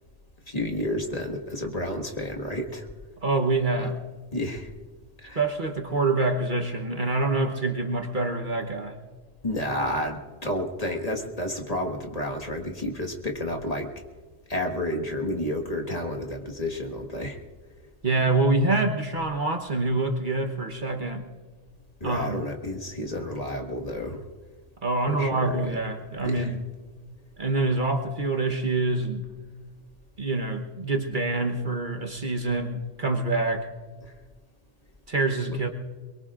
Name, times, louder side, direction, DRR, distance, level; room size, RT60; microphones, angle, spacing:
voice 1, 0.5-2.9 3.8-3.9 4.3-4.7 5.2-5.4 9.4-13.9 14.5-17.4 22.0-24.2 25.1-25.6 26.2-26.5 34.0-34.1, left 1 dB, 30° left, 1 dB, 1.7 m, -30 dB
voice 2, 3.2-4.0 5.3-9.0 18.0-21.3 22.0-22.4 24.8-26.6 27.4-29.2 30.2-33.6 35.1-35.7, right 2 dB, 45° right, 4 dB, 1.1 m, -26 dB
23.0 x 23.0 x 2.5 m, 1.4 s
omnidirectional pair, 1.3 m